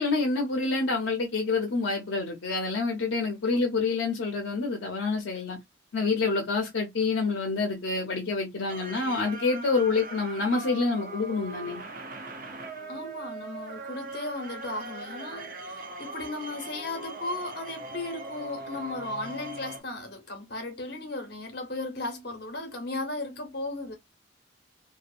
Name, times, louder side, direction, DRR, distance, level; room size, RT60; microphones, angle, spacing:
voice 1, 0.0-5.6 5.9-11.8, left 3 dB, 75° left, 0.6 m, -27 dB
sound 1, 8.7-19.8, right 2 dB, 45° right, 0.5 m, -40 dB
voice 2, 12.9-23.9, left 2 dB, 55° left, 0.9 m, -36 dB
2.7 x 2.1 x 2.4 m
head